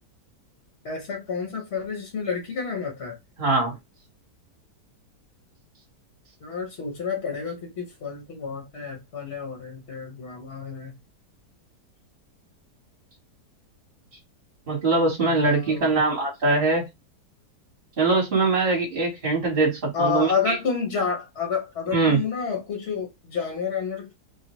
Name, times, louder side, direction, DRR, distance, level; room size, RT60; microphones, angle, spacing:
voice 1, 0.8-3.2 6.4-10.9 15.3-16.0 19.9-24.1, left 5 dB, 50° left, 1.0 m, -30 dB
voice 2, 3.4-3.7 14.7-16.8 18.0-20.5 21.9-22.2, right 3 dB, 35° right, 1.2 m, -22 dB
3.3 x 2.2 x 2.9 m
omnidirectional pair, 1.8 m